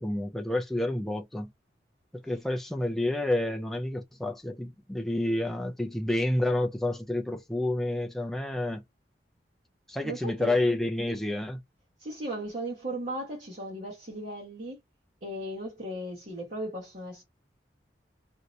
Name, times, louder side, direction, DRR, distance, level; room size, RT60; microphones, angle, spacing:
voice 1, 0.0-1.5 2.1-8.8 9.9-11.6, left 1 dB, ahead, 0.3 m, -29 dB
voice 2, 10.0-10.5 12.0-14.8 15.2-17.2, right 1 dB, 45° right, 1.1 m, -36 dB
2.7 x 2.6 x 3.0 m
head